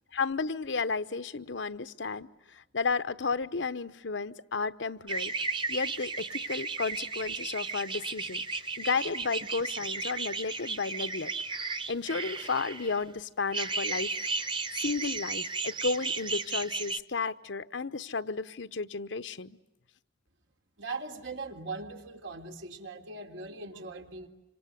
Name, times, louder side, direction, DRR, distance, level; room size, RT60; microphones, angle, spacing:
voice 1, 0.1-5.3 5.7-8.4 8.8-14.1 14.4-14.5 14.8-19.6, left 4 dB, 80° left, 13 dB, 1.0 m, -33 dB
sound 1, 5.1-13.0 13.5-17.0, right 4 dB, 25° right, 0.9 m, -34 dB
voice 2, 20.8-24.3, right 3 dB, 90° right, 3 dB, 3.3 m, -40 dB
26.5 x 26.5 x 8.2 m, 0.99 s
head